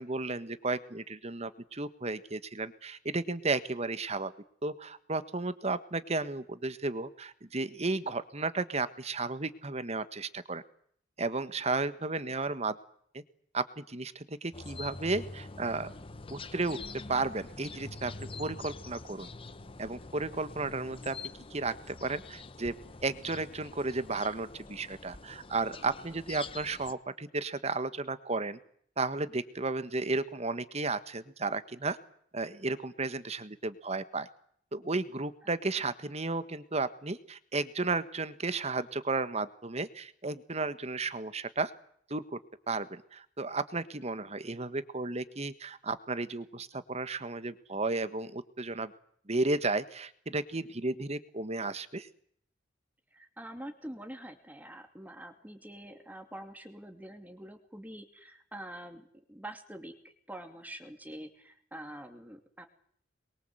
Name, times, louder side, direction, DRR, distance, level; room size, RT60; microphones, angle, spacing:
voice 1, 0.0-4.3 4.6-10.6 11.2-12.8 13.1-13.2 13.5-15.9 16.3-16.8 17.1-18.1 18.4-19.3 19.8-21.2 21.5-22.7 23.0-28.6 29.0-32.0 32.3-34.3 34.7-41.7 42.1-42.4 42.7-48.9 49.3-52.1, right 3 dB, 35° right, 13 dB, 1.5 m, -33 dB
sound 1, 14.5-26.9, left 3 dB, 30° left, 1.0 m, -45 dB
voice 2, 53.1-62.7, right 1 dB, 10° right, 6 dB, 2.7 m, -46 dB
26.5 x 22.5 x 7.9 m, 0.63 s
head